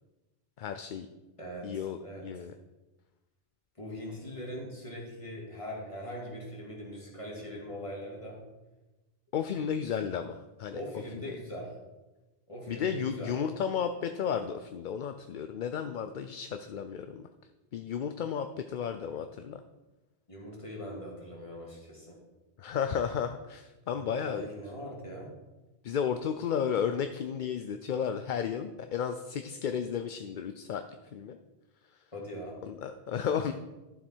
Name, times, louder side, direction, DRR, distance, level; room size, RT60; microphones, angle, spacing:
voice 1, 0.6-1.1 1.6-2.5 9.3-10.8 11.3-11.4 12.7-17.2 17.7-19.6 22.6-24.5 25.8-30.8 31.1-31.4 32.6-33.5, left 7 dB, 55° left, 8 dB, 0.6 m, -33 dB
voice 2, 1.4-2.3 3.8-8.4 9.5-9.6 10.7-11.8 12.5-13.3 20.3-22.2 23.9-25.3 32.1-32.6, equal, 30° left, -2 dB, 2.5 m, -41 dB
12.0 x 7.4 x 4.5 m, 1.1 s
omnidirectional pair, 1.1 m